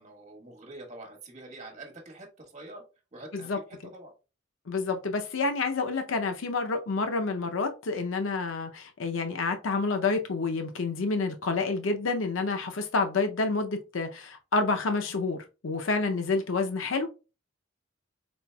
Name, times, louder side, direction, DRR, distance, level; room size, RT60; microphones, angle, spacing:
voice 1, 0.0-2.8 3.1-3.5 3.9-4.1, right 2 dB, 35° right, 1.5 m, -45 dB
voice 2, 4.7-15.4 15.6-17.1, left 3 dB, 85° left, 0.6 m, -28 dB
4.3 x 4.0 x 2.2 m
head